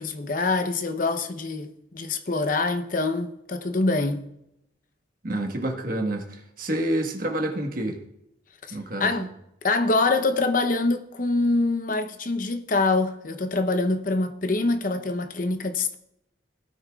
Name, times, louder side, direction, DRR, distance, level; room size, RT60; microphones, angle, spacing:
voice 1, 0.0-4.3 8.7-9.3 9.6-16.0, left 3 dB, 45° left, 0.8 m, -25 dB
voice 2, 5.2-8.0 8.7-9.3, right 1 dB, 45° right, 1.4 m, -28 dB
17.5 x 9.1 x 2.4 m
head